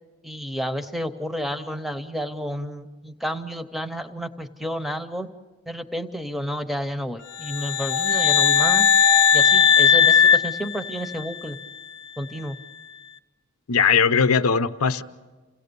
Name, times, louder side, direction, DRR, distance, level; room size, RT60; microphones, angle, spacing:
voice 1, 0.2-5.3 5.7-8.9 9.3-11.6 12.2-12.6, equal, ahead, 9 dB, 0.7 m, -31 dB
sound 1, 7.4-11.4, left 7 dB, 50° left, 0.6 m, -18 dB
voice 2, 13.7-15.0, left 6 dB, 85° left, 12 dB, 0.7 m, -19 dB
28.0 x 17.0 x 6.9 m, 1.3 s
head